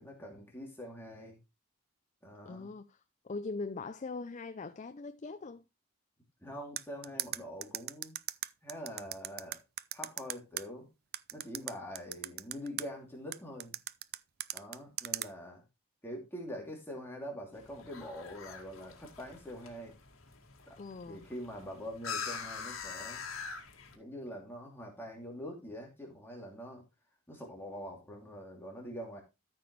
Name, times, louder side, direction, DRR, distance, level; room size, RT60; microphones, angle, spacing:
voice 1, 0.0-1.4 2.2-2.7 6.4-8.1 8.6-9.6 9.9-10.9 11.3-13.8 14.5-15.6 16.0-19.9 20.7-20.8 21.1-23.2 23.9-26.8 27.3-29.2, equal, 10° left, 2.8 m, -44 dB
voice 2, 2.5-5.6 20.8-21.3, left 3 dB, 35° left, 0.5 m, -41 dB
sound 1, 6.8-10.6 11.1-12.8 13.3-15.3, right 14 dB, 45° right, 0.4 m, -37 dB
sound 2, 17.5-24.0, left 5 dB, 70° left, 2.0 m, -44 dB
13.5 x 6.0 x 3.1 m
head